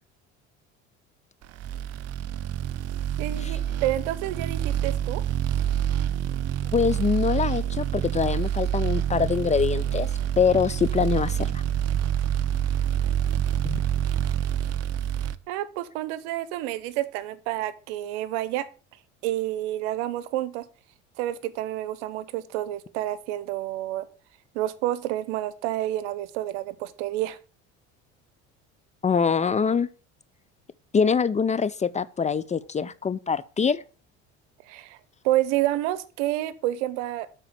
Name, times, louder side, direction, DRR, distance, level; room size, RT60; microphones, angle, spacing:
sound 1, 1.6-15.3, right 10 dB, 50° right, 0.6 m, -27 dB
voice 1, 3.2-5.2 15.5-18.7 19.2-20.7 21.2-24.1 24.5-27.4 34.6-35.0 35.2-37.3, right 14 dB, 75° right, 0.8 m, -29 dB
voice 2, 6.7-10.1 10.4-11.6 13.6-13.8 29.0-29.9 30.9-33.8, left 6 dB, 20° left, 0.4 m, -24 dB
7.0 x 4.3 x 6.7 m
hypercardioid pair, 75°, 34 cm